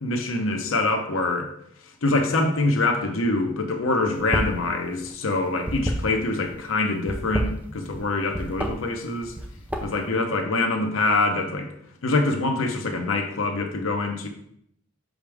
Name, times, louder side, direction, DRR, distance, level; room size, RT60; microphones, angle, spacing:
voice 1, 0.0-1.5 2.0-9.3 9.8-11.7 12.0-14.3, left 2 dB, 75° left, 4 dB, 0.8 m, -25 dB
sound 1, 4.2-4.6 4.9-6.5 7.0-8.0 8.3-8.7 9.2-10.1, equal, 5° right, 0.6 m, -28 dB
6.1 x 5.2 x 3.4 m, 0.70 s
head